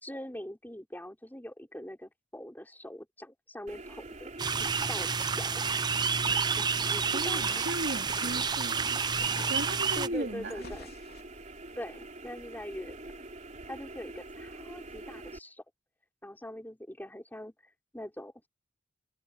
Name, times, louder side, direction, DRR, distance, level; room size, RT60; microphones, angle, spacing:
voice 1, 0.0-4.3 4.9-5.6 6.6-7.6 9.9-10.9 11.7-13.0 13.7-15.6 16.2-17.5 17.9-18.5, equal, 10° left, 4.2 m, -43 dB
sound 1, 3.7-15.4, right 2 dB, 40° right, 3.8 m, -45 dB
sound 2, 4.4-10.1, right 5 dB, 25° right, 0.5 m, -29 dB
sound 3, 5.2-11.2, left 4 dB, 60° left, 3.4 m, -50 dB
voice 2, 7.1-9.0 9.5-10.8, right 1 dB, 65° right, 3.3 m, -36 dB
head